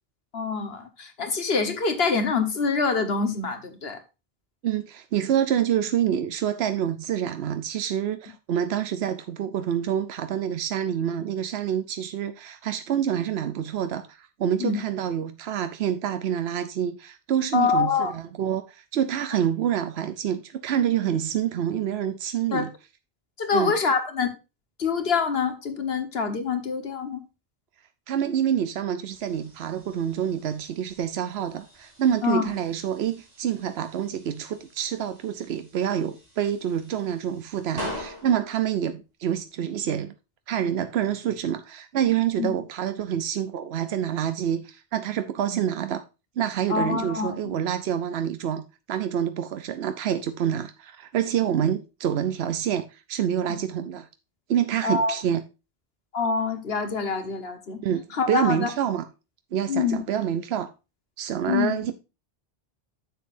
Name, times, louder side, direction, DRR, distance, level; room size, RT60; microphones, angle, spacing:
voice 1, 0.3-4.0 14.6-14.8 17.5-18.1 22.5-22.7 23.4-24.3 24.8-27.2 32.2-32.4 42.4-42.5 46.7-47.5 54.8-55.2 56.1-57.8 58.1-58.7 59.7-60.0 61.5-61.7, left 5 dB, 75° left, 1.5 m, -25 dB
voice 2, 4.6-22.7 23.5-23.8 28.1-40.1 40.5-46.0 46.4-48.6 48.9-54.1 54.5-55.4 57.8-59.1 59.5-60.7 61.2-61.9, right 9 dB, 85° right, 0.9 m, -27 dB
sound 1, 29.1-40.0, equal, 40° right, 3.1 m, -44 dB
10.0 x 7.3 x 2.6 m
omnidirectional pair, 1.0 m